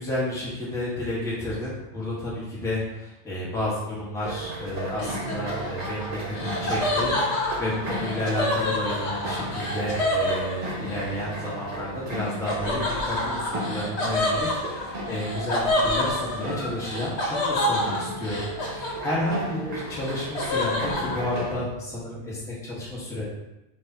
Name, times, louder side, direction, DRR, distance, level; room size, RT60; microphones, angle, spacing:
voice 1, 0.0-23.3, left 1 dB, 5° left, -7 dB, 1.0 m, -31 dB
sound 1, 4.2-21.5, right 1 dB, 40° right, 0.8 m, -35 dB
Laughter, 5.0-11.0 12.5-19.4 19.7-21.2, left 1 dB, 70° left, 1.2 m, -28 dB
4.6 x 2.7 x 4.0 m, 0.97 s
omnidirectional pair, 1.2 m